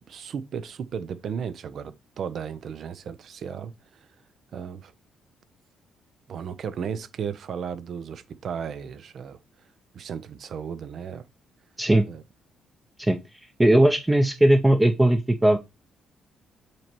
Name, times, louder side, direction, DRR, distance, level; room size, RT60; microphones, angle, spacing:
voice 1, 0.0-4.1 4.5-4.9 6.3-9.4 9.9-11.2 12.1-12.2, right 7 dB, 60° right, 0.5 m, -35 dB
voice 2, 13.6-15.6, right 1 dB, 10° right, 0.6 m, -18 dB
7.7 x 2.9 x 4.5 m
cardioid pair, 90°, 0 cm